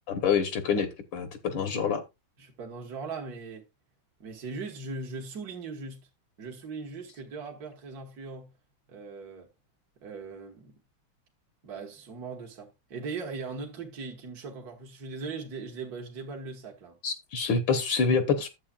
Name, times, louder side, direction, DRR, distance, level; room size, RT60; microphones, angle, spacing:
voice 1, 0.1-2.0 17.0-18.5, left 5 dB, 70° left, 1.7 m, -26 dB
voice 2, 2.4-3.6 4.2-6.1 6.4-8.5 8.9-9.5 10.0-10.7 11.6-17.0, right 4 dB, 50° right, 1.8 m, -39 dB
11.5 x 7.8 x 2.3 m
omnidirectional pair, 2.2 m